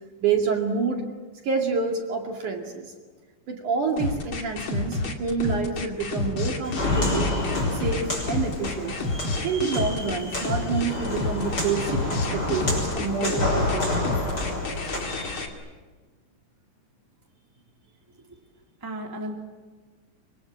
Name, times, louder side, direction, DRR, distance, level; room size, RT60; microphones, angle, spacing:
voice 1, 0.2-1.1 1.4-2.9 3.5-7.3 7.7-8.9 9.4-14.2, right 5 dB, 50° right, 2 dB, 3.4 m, -28 dB
sound 1, 4.0-15.5, left 3 dB, 35° left, 2.4 m, -29 dB
Walk footsteps, 6.6-15.4, left 2 dB, 20° left, 6.6 m, -29 dB
voice 2, 18.8-19.3, equal, 5° right, 1 dB, 2.8 m, -35 dB
26.0 x 25.0 x 8.5 m, 1.4 s
omnidirectional pair, 4.9 m